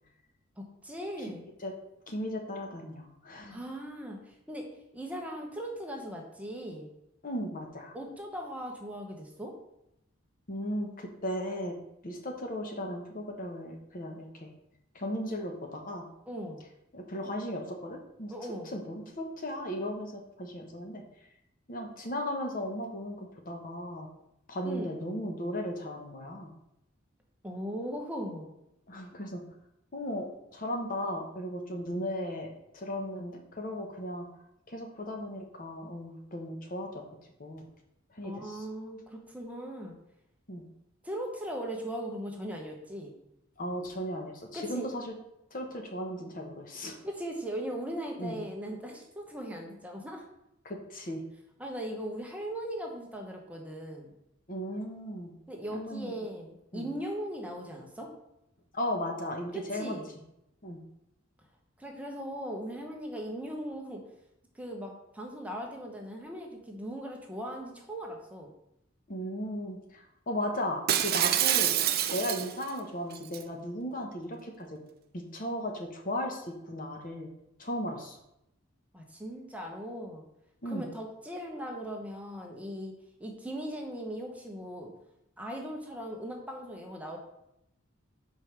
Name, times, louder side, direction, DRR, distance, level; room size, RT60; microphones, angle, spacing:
voice 1, 0.6-1.4 3.5-4.7 4.9-6.9 7.9-9.5 16.3-16.6 18.3-18.7 24.6-25.0 27.4-28.5 38.2-39.9 41.0-43.1 44.5-44.9 47.0-50.2 51.6-54.1 55.5-58.1 59.5-60.0 61.8-64.0 64.5-68.5 78.9-80.2 80.6-82.9 83.2-84.9 85.4-87.2, equal, 5° right, 1 dB, 0.9 m, -39 dB
voice 2, 2.1-3.6 7.2-7.9 10.5-11.7 12.0-14.5 14.9-16.1 16.9-18.3 18.7-21.0 21.7-24.1 24.5-26.5 28.9-29.4 29.9-34.3 34.7-37.0 37.4-37.6 38.1-38.7 40.5-40.6 43.6-45.1 45.5-46.9 48.2-48.4 50.6-51.2 54.5-55.3 55.7-56.3 56.7-56.9 58.7-60.0 60.6-60.8 69.1-71.7 72.1-74.8 75.1-77.3 77.6-78.2 80.6-80.9, equal, 45° left, 3 dB, 1.0 m, -36 dB
Shatter, 70.9-72.7 73.1-73.4, right 11 dB, 50° right, 0.4 m, -26 dB
5.1 x 4.7 x 5.8 m, 0.82 s
head